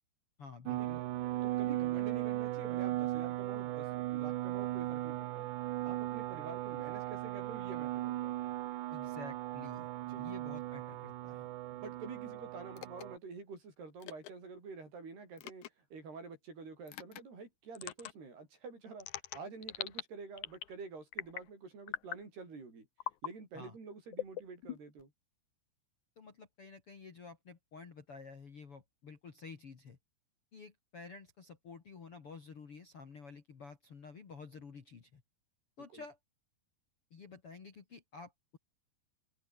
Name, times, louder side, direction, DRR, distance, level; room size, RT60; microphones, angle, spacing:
voice 1, 0.4-1.0 8.9-9.9 10.2-11.5 23.5-23.7 26.2-30.0 30.5-35.2 35.8-36.2 37.1-38.6, left 4 dB, 40° left, 2.5 m, -51 dB
sound 1, 0.7-13.2, right 16 dB, 75° right, 3.2 m, -37 dB
voice 2, 1.4-5.5 5.8-8.4 10.0-10.3 11.7-19.1 19.3-22.9 23.2-25.1 35.9-36.0, right 4 dB, 60° right, 9.6 m, -48 dB
sound 2, 12.8-13.0 14.0-14.3 15.4-15.7 16.9-17.2 17.8-18.1 19.0-20.0 20.4-20.8 21.1-21.5 21.9-22.2 23.0-23.3 24.1-25.0, left 12 dB, 75° left, 1.8 m, -41 dB
omnidirectional pair, 5.3 m